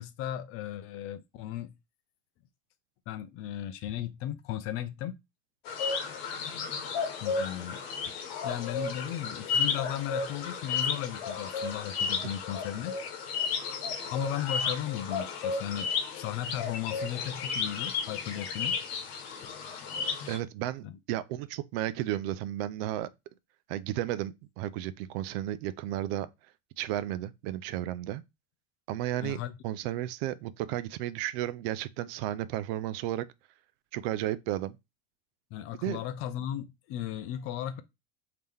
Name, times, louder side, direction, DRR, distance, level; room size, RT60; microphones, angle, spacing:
voice 1, 0.0-1.7 3.1-5.1 7.2-8.2 8.4-12.9 14.1-18.8 19.4-19.5 20.8-21.0 29.2-29.5 35.5-37.8, left 11 dB, 45° left, 0.5 m, -36 dB
sound 1, 5.7-20.4, left 5 dB, 80° left, 1.0 m, -33 dB
voice 2, 20.3-23.1 23.7-26.3 26.8-28.2 28.9-33.3 33.9-34.8 35.8-36.0, right 13 dB, 70° right, 0.4 m, -33 dB
3.6 x 2.8 x 3.2 m
supercardioid pair, 135°, 31 cm